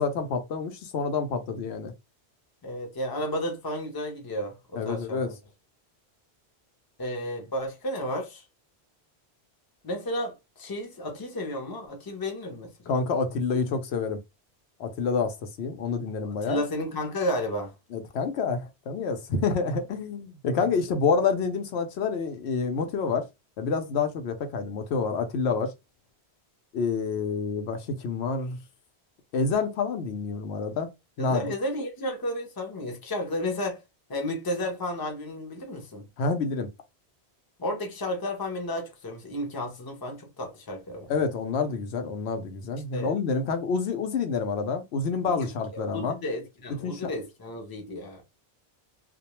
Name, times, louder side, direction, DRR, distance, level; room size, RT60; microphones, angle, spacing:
voice 1, 0.0-1.9 4.7-5.3 12.9-14.2 14.8-16.6 17.9-23.3 23.6-25.7 26.7-28.6 29.3-30.9 31.2-31.4 36.2-36.7 41.1-46.1 46.8-47.1, left 5 dB, 80° left, 0.9 m, -28 dB
voice 2, 2.6-5.2 7.0-8.4 9.8-12.7 16.3-17.7 20.5-20.6 31.2-33.8 34.1-36.1 37.6-41.1 42.9-43.1 45.3-48.2, left 1 dB, 25° left, 0.6 m, -32 dB
2.3 x 2.1 x 2.9 m
omnidirectional pair, 1.1 m